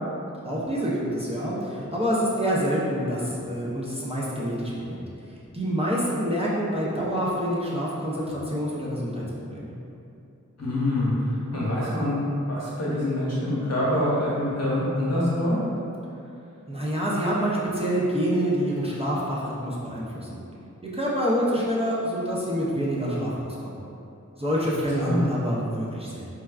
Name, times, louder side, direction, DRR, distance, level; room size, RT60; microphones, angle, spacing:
voice 1, 0.4-5.0 5.5-9.7 16.7-20.4 20.8-23.8 24.4-26.3, equal, 20° right, -7 dB, 0.5 m, -27 dB
voice 2, 10.6-15.6 25.0-25.2, left 1 dB, 55° left, -7 dB, 1.0 m, -25 dB
4.6 x 2.2 x 2.3 m, 2.7 s
wide cardioid pair, 45°, 31 cm